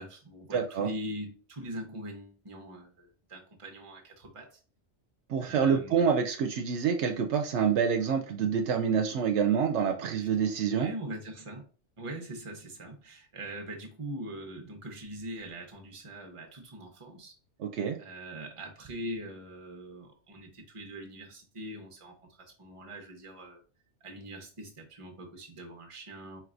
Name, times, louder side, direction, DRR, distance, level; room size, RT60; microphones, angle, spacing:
voice 1, 0.0-4.6 5.4-6.1 10.2-10.3 10.7-11.6 12.0-17.3 18.0-23.6 24.0-26.4, right 1 dB, 30° right, 0.9 m, -42 dB
voice 2, 0.5-0.9 5.3-10.9 17.6-18.0, right 7 dB, 75° right, 0.9 m, -27 dB
4.5 x 3.1 x 2.5 m
omnidirectional pair, 1.2 m